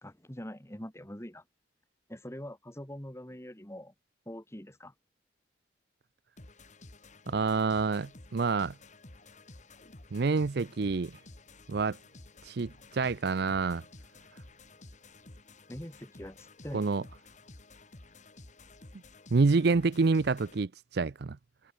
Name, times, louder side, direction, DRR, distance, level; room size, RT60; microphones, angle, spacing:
voice 1, 0.0-1.4 2.1-3.9 4.3-4.9 15.7-16.8, equal, 15° left, 2.1 m, -43 dB
sound 1, 6.4-20.6, left 2 dB, 40° left, 2.0 m, -53 dB
voice 2, 7.3-8.7 10.1-11.2 11.7-12.0 12.4-13.8 16.7-17.0 19.3-21.4, right 4 dB, 60° right, 0.5 m, -27 dB
head